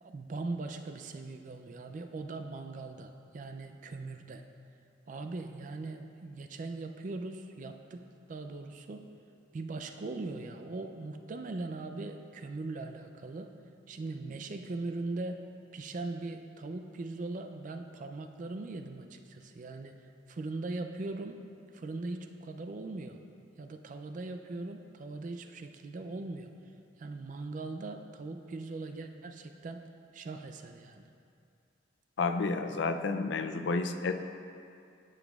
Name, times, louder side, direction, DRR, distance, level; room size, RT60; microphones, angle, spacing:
voice 1, 0.0-4.4 5.1-8.0 8.3-9.1 9.5-13.5 13.9-15.4 15.7-19.9 20.3-21.4 21.7-23.2 23.6-26.5 27.0-29.8 30.1-31.1, right 3 dB, 40° right, 6 dB, 0.3 m, -40 dB
voice 2, 32.2-34.1, left 4 dB, 65° left, 8 dB, 0.4 m, -30 dB
10.5 x 7.0 x 2.3 m, 2.5 s
head